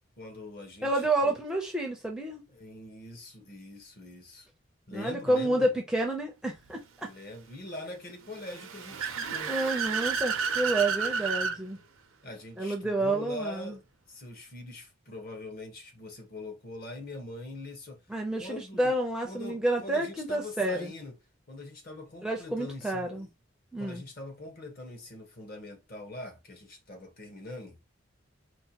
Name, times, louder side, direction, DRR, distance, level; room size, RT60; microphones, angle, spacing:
voice 1, 0.2-1.4 2.5-4.5 4.9-5.7 7.0-9.6 12.2-13.8 14.1-18.0 18.4-19.0 19.2-21.2 21.5-23.3 23.8-27.8, left 2 dB, 45° left, 0.8 m, -43 dB
voice 2, 0.8-2.4 4.9-7.1 9.5-11.8 12.6-13.7 18.1-20.9 22.2-23.3 23.7-24.0, right 2 dB, 5° right, 0.4 m, -29 dB
Car / Accelerating revving vroom, 8.3-11.6, right 6 dB, 85° right, 0.6 m, -31 dB
4.4 x 2.1 x 2.8 m
head